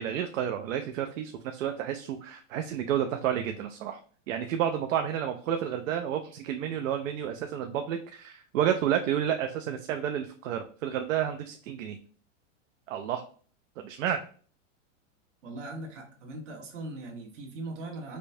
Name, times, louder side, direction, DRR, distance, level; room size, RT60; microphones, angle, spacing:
voice 1, 0.0-4.0 4.3-12.0 12.9-13.2 13.8-14.3, right 9 dB, 85° right, 6 dB, 0.6 m, -30 dB
voice 2, 15.4-18.2, right 2 dB, 70° right, 0 dB, 1.5 m, -40 dB
5.1 x 2.2 x 2.6 m, 0.43 s
supercardioid pair, 175°, 38 cm